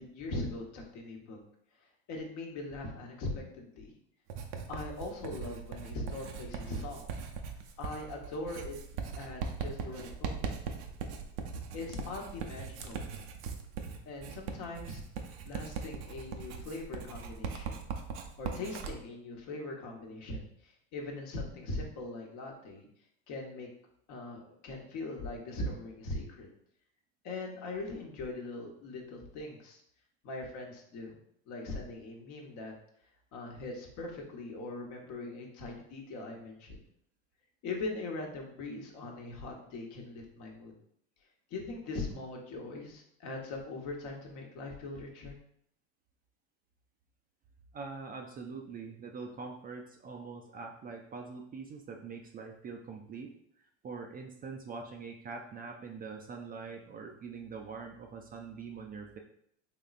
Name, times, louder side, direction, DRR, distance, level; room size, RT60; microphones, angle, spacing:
voice 1, 0.0-1.4 2.1-3.9 4.7-7.1 7.8-8.8 9.2-10.6 11.7-13.1 14.1-15.0 15.4-17.8 18.4-22.9 23.3-23.7 24.1-26.5 27.2-29.8 30.2-31.1 31.5-32.7 33.3-36.8 37.6-40.7 41.5-45.4, left 2 dB, 55° left, 1 dB, 1.0 m, -41 dB
Writing, 4.3-19.0, right 5 dB, 75° right, 0.6 m, -40 dB
voice 2, 47.7-59.2, right 4 dB, 25° right, 2 dB, 0.4 m, -44 dB
3.6 x 3.0 x 2.4 m, 0.69 s
hypercardioid pair, 90°, 35 cm